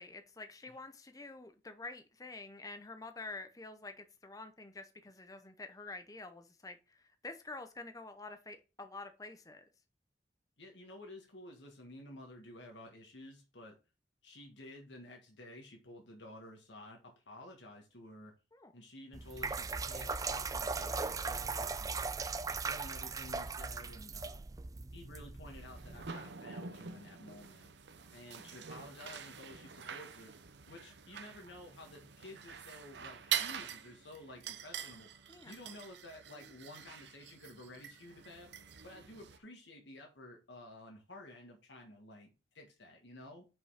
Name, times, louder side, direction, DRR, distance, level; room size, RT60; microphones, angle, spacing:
voice 1, 0.0-9.6 18.5-18.7 35.3-35.5, left 3 dB, 20° left, 0.7 m, -48 dB
voice 2, 10.6-13.7 14.2-18.3 18.7-22.1 22.5-24.4 24.9-27.7 28.1-30.3 30.7-38.5 38.8-43.5, left 1 dB, 85° left, 1.7 m, -52 dB
sound 1, 19.1-26.1, right 4 dB, 20° right, 0.3 m, -39 dB
sound 2, 25.4-39.4, right 8 dB, 75° right, 0.8 m, -45 dB
5.5 x 5.4 x 5.7 m
head